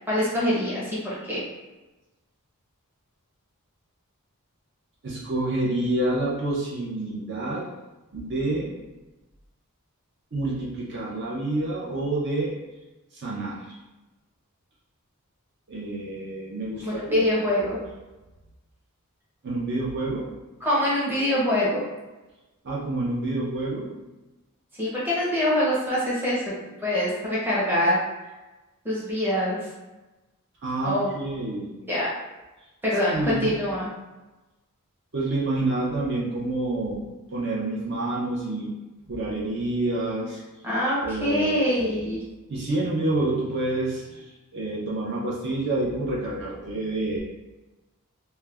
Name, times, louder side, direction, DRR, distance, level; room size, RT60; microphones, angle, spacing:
voice 1, 0.1-1.4 16.8-17.8 20.6-21.8 24.8-26.5 26.8-28.0 28.8-29.7 30.8-31.1 31.9-32.1 32.8-33.9 40.6-42.2, left 1 dB, 10° right, -7 dB, 0.7 m, -24 dB
voice 2, 5.0-7.7 8.1-8.7 10.3-12.6 13.1-13.7 15.7-17.8 19.4-20.3 22.6-23.9 30.6-31.7 33.1-33.6 35.1-37.0 37.3-38.7 39.1-40.4 41.0-42.1 42.5-47.2, right 2 dB, 50° right, -5 dB, 0.5 m, -28 dB
2.3 x 2.1 x 3.3 m, 1.1 s
head